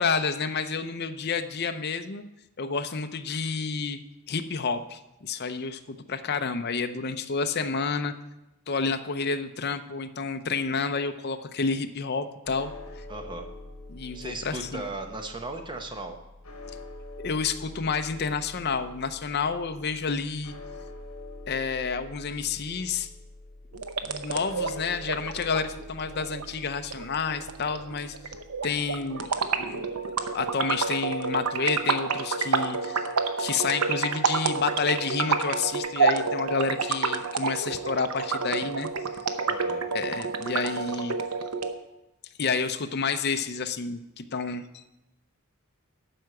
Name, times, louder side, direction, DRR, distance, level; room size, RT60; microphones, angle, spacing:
voice 1, 0.0-2.2 2.6-4.0 4.3-8.1 8.7-13.0 13.9-14.9 17.2-20.5 21.5-23.1 24.0-28.2 28.6-29.9 30.2-33.1 33.4-38.9 39.9-41.2 42.4-44.8, left 5 dB, 45° left, 8 dB, 0.6 m, -30 dB
sound 1, 12.4-30.7, left 2 dB, 80° left, 1.3 m, -46 dB
voice 2, 13.1-13.5 14.1-16.1 39.5-39.8, right 2 dB, 20° right, 4 dB, 1.0 m, -37 dB
sound 2, 23.7-41.7, right 4 dB, 85° right, 0.8 m, -29 dB
12.0 x 4.8 x 7.9 m, 0.93 s
head